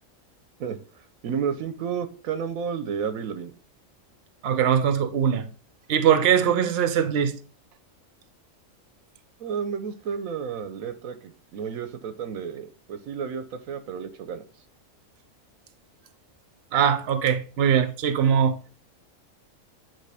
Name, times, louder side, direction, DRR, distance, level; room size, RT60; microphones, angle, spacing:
voice 1, 1.2-3.5 9.4-14.4, right 7 dB, 85° right, 1.2 m, -31 dB
voice 2, 4.4-5.5 5.9-7.3 16.7-18.6, right 8 dB, 55° right, 0.9 m, -21 dB
9.2 x 3.7 x 3.4 m
omnidirectional pair, 1.4 m